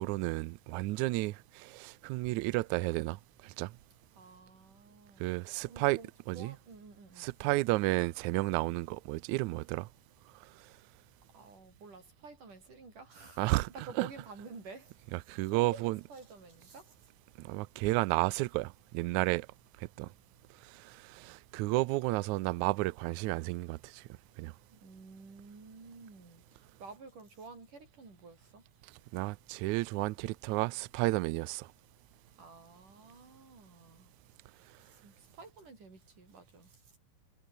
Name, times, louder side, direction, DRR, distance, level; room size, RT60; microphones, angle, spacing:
voice 1, 0.0-3.7 5.2-6.0 6.3-6.5 7.2-9.9 13.4-13.7 14.0-14.1 15.1-16.0 17.4-19.5 19.8-20.1 20.6-24.0 24.4-24.5 29.1-31.7, right 21 dB, 85° right, 1.7 m, -32 dB
voice 2, 4.2-5.3 5.6-6.1 6.3-7.4 11.3-15.1 15.5-17.1 24.7-28.6 32.4-34.1 34.6-36.9, right 4 dB, 60° right, 8.8 m, -51 dB
omnidirectional pair, 4.0 m